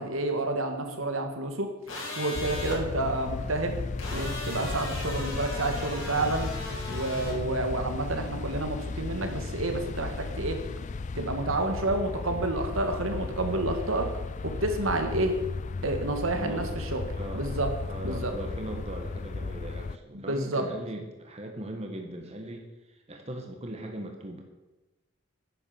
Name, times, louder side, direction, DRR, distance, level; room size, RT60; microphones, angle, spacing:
voice 1, 0.0-1.8 2.2-3.8 4.1-6.5 6.9-10.6 11.2-14.1 14.4-15.4 15.8-17.0 17.3-17.7 18.0-18.3 20.3-20.7, right 2 dB, 80° right, 5 dB, 2.0 m, -29 dB
sound 1, 1.9-2.8 4.0-7.4, left 2 dB, 75° left, 4.6 m, -37 dB
sound 2, 2.3-20.0, left 3 dB, 35° left, 0.4 m, -35 dB
voice 2, 16.3-16.9 17.1-17.5 17.9-24.4, right 1 dB, 30° right, 2 dB, 1.5 m, -39 dB
10.5 x 10.5 x 7.0 m, 1.1 s
head